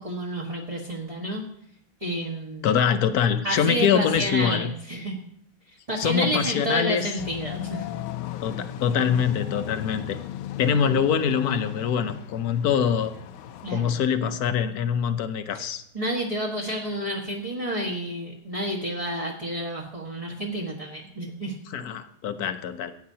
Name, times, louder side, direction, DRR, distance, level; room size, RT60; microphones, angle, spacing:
voice 1, 0.0-1.4 2.0-2.7 3.4-5.2 5.7-7.9 13.6-13.9 15.9-21.5, right 1 dB, 20° right, -3 dB, 1.3 m, -30 dB
voice 2, 2.6-4.7 6.0-7.1 8.4-10.2 10.6-13.1 13.7-15.8 21.7-22.9, left 7 dB, 65° left, 9 dB, 1.0 m, -24 dB
sound 1, 7.2-13.7, left 12 dB, 85° left, 1.4 m, -36 dB
18.0 x 9.5 x 2.8 m, 0.72 s
omnidirectional pair, 2.2 m